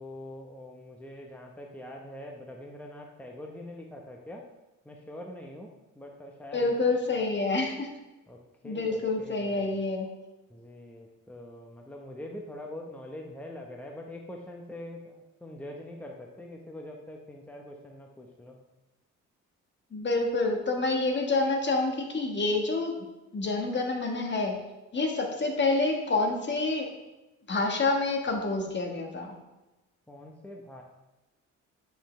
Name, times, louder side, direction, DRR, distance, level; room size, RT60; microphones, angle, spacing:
voice 1, 0.0-4.4 4.8-5.7 5.9-6.7 7.1-7.2 8.3-9.8 10.5-18.6 30.1-30.8, left 1 dB, 5° left, 0 dB, 1.0 m, -44 dB
voice 2, 6.5-7.9 8.6-10.1 19.9-23.1 23.3-24.6 24.9-26.9 27.5-29.3, left 3 dB, 35° left, 3 dB, 1.5 m, -28 dB
9.7 x 5.7 x 3.3 m, 1.1 s
cardioid pair, 90°, 30 cm